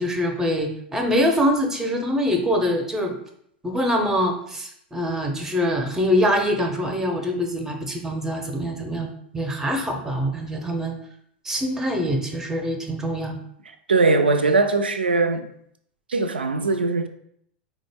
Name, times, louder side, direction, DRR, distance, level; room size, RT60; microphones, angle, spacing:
voice 1, 0.0-3.2 3.6-11.0 11.4-13.4, equal, 10° right, 0.6 m, -24 dB
voice 2, 13.9-15.5 16.1-17.1, right 3 dB, 90° right, 0.3 m, -20 dB
3.7 x 2.1 x 3.4 m
hypercardioid pair, 90°, 5 cm